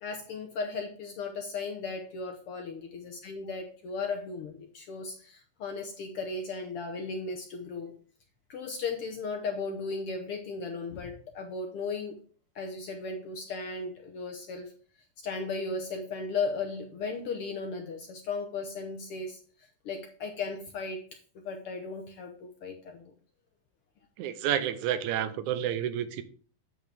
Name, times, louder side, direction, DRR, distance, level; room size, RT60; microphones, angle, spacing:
voice 1, 0.0-8.0 8.5-12.2 12.5-14.7 15.2-19.4 19.8-21.1 21.3-23.1, left 4 dB, 65° left, 1.4 m, -36 dB
voice 2, 24.2-26.2, right 10 dB, 85° right, 2.1 m, -30 dB
8.4 x 6.3 x 3.4 m
omnidirectional pair, 3.4 m